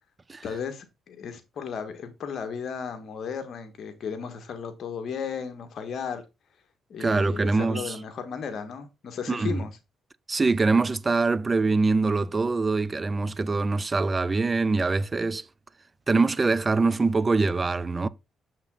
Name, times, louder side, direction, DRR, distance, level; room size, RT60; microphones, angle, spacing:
voice 1, 0.4-6.2 6.9-9.7, left 6 dB, 60° left, 1.7 m, -35 dB
voice 2, 7.0-8.0 9.3-9.6 10.3-15.4 16.1-18.1, right 3 dB, 25° right, 0.5 m, -24 dB
7.2 x 5.7 x 4.1 m
cardioid pair, 90°, 0 cm